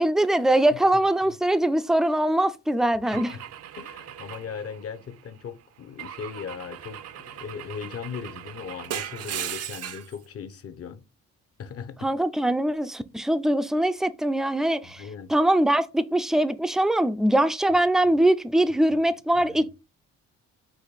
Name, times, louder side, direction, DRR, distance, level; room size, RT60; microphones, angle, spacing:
voice 1, 0.0-3.4 12.0-15.0 15.3-19.7, right 1 dB, ahead, 0.3 m, -22 dB
voice 2, 3.1-3.4 3.8-11.0 11.6-12.1 14.8-15.3 18.9-19.0 19.4-19.7, left 6 dB, 50° left, 0.8 m, -38 dB
Car / Engine / Glass, 3.1-5.3 6.0-10.2, right 10 dB, 55° right, 0.5 m, -38 dB
5.0 x 2.7 x 4.0 m
cardioid pair, 90°, 30 cm